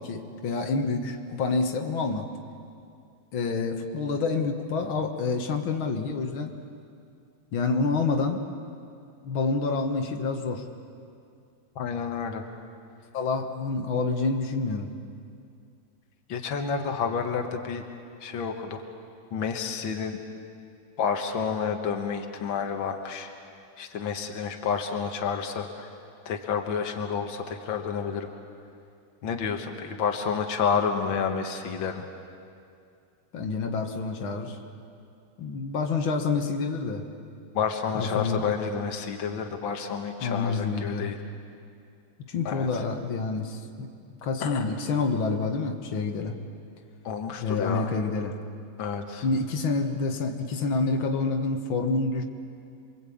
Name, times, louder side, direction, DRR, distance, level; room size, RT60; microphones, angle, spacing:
voice 1, 0.0-2.3 3.3-6.6 7.5-8.4 9.2-10.6 13.1-14.9 33.3-34.6 35.4-37.1 37.9-38.4 40.2-41.1 42.3-43.9 44.2-46.4 47.4-48.4 49.2-52.2, left 4 dB, 60° left, 4 dB, 1.4 m, -28 dB
voice 2, 11.7-12.4 16.3-17.8 18.2-18.8 19.3-20.2 21.0-23.3 23.8-25.9 26.2-28.3 29.2-32.0 37.5-41.2 42.4-42.8 44.4-44.6 47.0-47.9 48.8-49.3, left 6 dB, 85° left, 4 dB, 1.1 m, -30 dB
27.5 x 23.5 x 8.6 m, 2.4 s
omnidirectional pair, 4.3 m